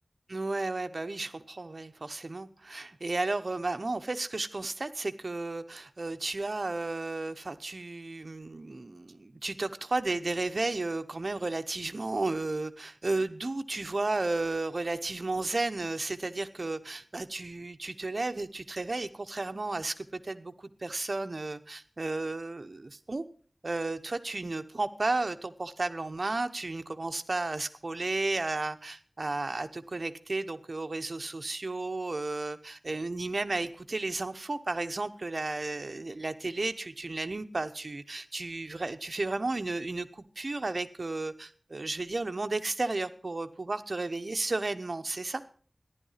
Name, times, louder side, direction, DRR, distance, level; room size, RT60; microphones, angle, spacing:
voice 1, 0.3-23.2 23.6-45.4, right 2 dB, 60° right, 10 dB, 0.9 m, -33 dB
14.5 x 11.0 x 5.7 m, 0.44 s
wide cardioid pair, 70°, 0 cm